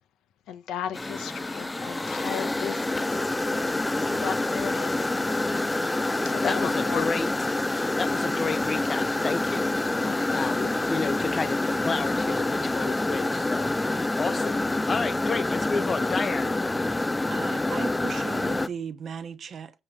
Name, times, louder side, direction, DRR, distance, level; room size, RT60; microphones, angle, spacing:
voice 1, 0.5-3.3 4.0-5.8 6.2-7.1 9.9-10.4, left 9 dB, 85° left, 1.1 m, -36 dB
sound 1, 0.9-18.7, left 2 dB, 15° left, 0.5 m, -27 dB
voice 2, 6.4-7.3 7.7-9.7 10.3-16.5, left 4 dB, 35° left, 0.9 m, -31 dB
voice 3, 17.3-19.7, right 7 dB, 55° right, 0.9 m, -37 dB
7.6 x 3.7 x 4.6 m
cardioid pair, 90°, 0 cm